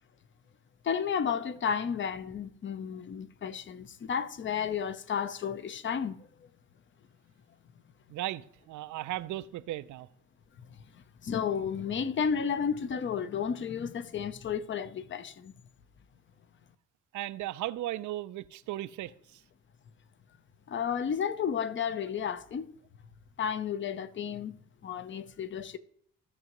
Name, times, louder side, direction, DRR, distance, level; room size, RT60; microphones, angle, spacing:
voice 1, 0.8-6.5 10.6-10.7 10.9-15.5 20.7-22.7 23.4-24.5 24.8-25.8, left 7 dB, 40° left, 0.7 m, -32 dB
voice 2, 8.1-10.1 17.1-19.4, right 14 dB, 75° right, 0.5 m, -36 dB
15.5 x 6.4 x 3.0 m
cardioid pair, 90°, 30 cm